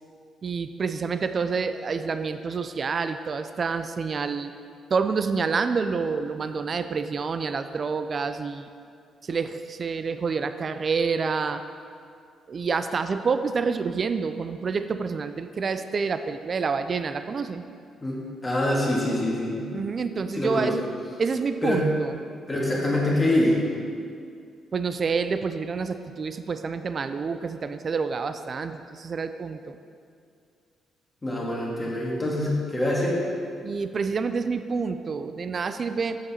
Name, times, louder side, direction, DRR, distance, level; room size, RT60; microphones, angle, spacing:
voice 1, 0.4-4.5 4.9-8.7 9.2-11.6 12.5-17.6 19.7-20.8 21.2-22.2 24.7-29.8 33.6-36.2, right 5 dB, 45° right, 10 dB, 0.4 m, -28 dB
voice 2, 18.0-19.6 20.3-20.7 21.6-21.8 22.5-23.8 31.2-33.2, left 1 dB, 20° left, -4 dB, 1.8 m, -25 dB
7.7 x 6.8 x 4.2 m, 2.3 s
cardioid pair, 90°, 0 cm